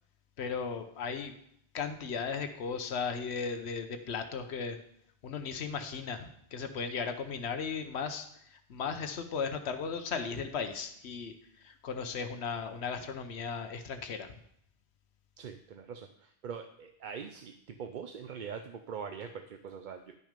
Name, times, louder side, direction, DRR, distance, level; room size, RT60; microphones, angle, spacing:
voice 1, 0.4-1.3 1.7-4.8 5.2-11.4 11.6-14.3, left 5 dB, 85° left, 7 dB, 1.0 m, -36 dB
voice 2, 15.4-20.2, right 6 dB, 55° right, 7 dB, 0.6 m, -43 dB
11.0 x 6.1 x 5.1 m, 0.70 s
omnidirectional pair, 1.1 m